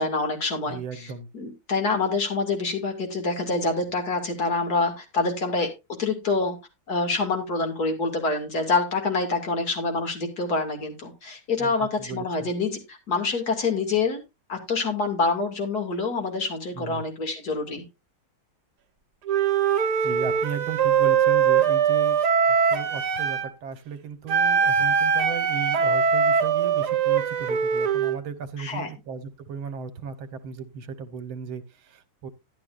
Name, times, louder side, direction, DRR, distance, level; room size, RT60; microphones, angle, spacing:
voice 1, 0.0-1.1 1.3-5.7 6.0-6.6 6.9-14.2 14.5-17.8 28.6-28.9, left 3 dB, 50° left, 4 dB, 2.9 m, -26 dB
voice 2, 0.7-1.3 11.6-12.5 16.8-17.0 20.0-22.2 22.7-32.3, right 6 dB, 75° right, 12 dB, 2.0 m, -36 dB
Wind instrument woodwind instrument, 19.3-23.5 24.3-28.2, right 7 dB, 60° right, 1.5 m, -22 dB
12.0 x 11.0 x 2.5 m, 0.24 s
omnidirectional pair, 2.2 m